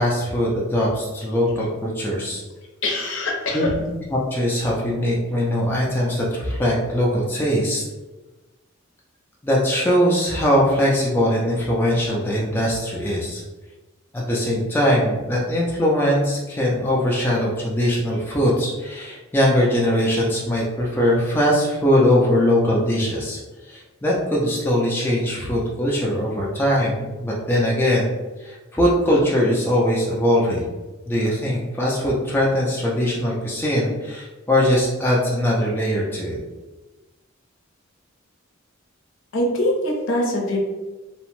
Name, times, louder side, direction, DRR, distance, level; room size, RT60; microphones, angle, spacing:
voice 1, 0.0-2.4 3.5-3.7 4.1-7.8 9.4-13.4 14.1-28.1 28.4-30.6 31.1-36.4, equal, 10° left, -5 dB, 0.4 m, -21 dB
voice 2, 2.8-3.7 39.3-40.6, left 1 dB, 60° left, -1 dB, 0.6 m, -23 dB
2.8 x 2.1 x 3.0 m, 1.2 s
head